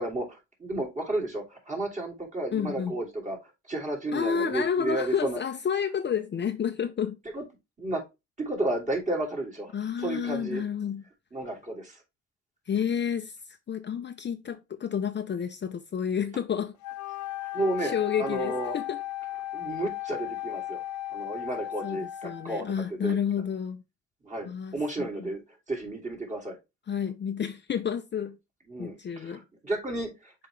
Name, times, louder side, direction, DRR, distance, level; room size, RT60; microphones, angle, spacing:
voice 1, 0.0-3.4 3.7-5.4 7.3-7.4 7.8-8.0 8.4-9.7 10.0-10.6 11.3-12.0 17.5-18.8 19.5-20.8 21.1-23.2 24.2-25.4 25.7-26.6 28.7-30.3, right 2 dB, 25° right, 2.9 m, -32 dB
voice 2, 2.5-3.0 4.1-7.2 9.7-11.0 12.7-16.8 17.8-19.0 21.8-23.8 24.4-24.8 25.2-25.3 26.9-28.4 28.8-29.4, left 8 dB, 35° left, 0.6 m, -30 dB
Wind instrument woodwind instrument, 16.8-22.7, left 14 dB, 75° left, 0.7 m, -36 dB
6.6 x 4.8 x 3.2 m
cardioid pair, 90°, 30 cm